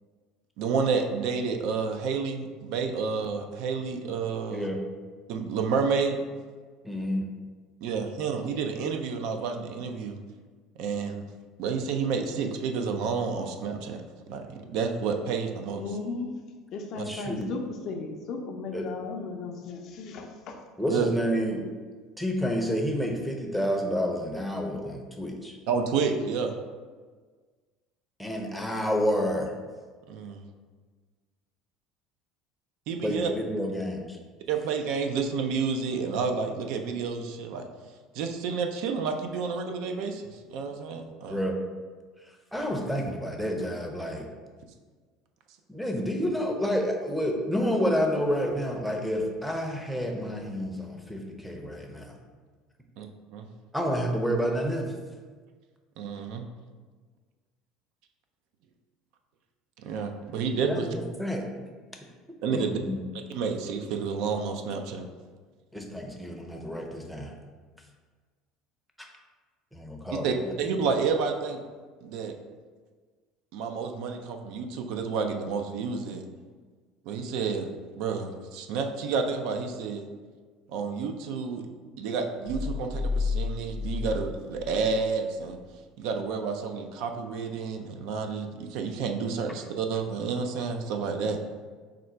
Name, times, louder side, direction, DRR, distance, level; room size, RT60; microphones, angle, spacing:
voice 1, 0.6-4.7 5.3-6.2 7.8-10.2 10.8-11.2 11.6-14.0 14.3-15.8 17.0-17.1 20.9-21.1 25.7-26.5 30.1-30.4 32.9-33.3 34.5-37.7 38.1-41.4 53.0-53.1 53.3-53.5 56.0-56.5 59.8-60.9 62.4-62.8 63.1-65.1 70.2-71.6 72.0-72.3 73.5-76.2 77.1-77.7 77.9-80.1 80.7-81.6 82.0-85.6 86.0-91.4, right 5 dB, 70° right, 0.4 m, -30 dB
voice 2, 4.5-4.8 6.8-7.3 17.1-17.5 18.7-18.9 20.8-21.7 22.2-25.5 28.2-29.5 33.0-34.2 41.3-41.6 42.5-44.3 45.7-52.2 53.7-54.9 60.7-61.4 62.5-63.0 65.7-67.3 69.0-69.1 69.7-70.9, equal, ahead, 0.6 m, -29 dB
voice 3, 15.8-16.3 16.7-20.6, left 3 dB, 55° left, 0.5 m, -36 dB
sound 1, 82.5-85.0 85.4-85.5, left 4 dB, 40° right, 0.8 m, -31 dB
3.7 x 2.2 x 4.3 m
supercardioid pair, 110°, 0 cm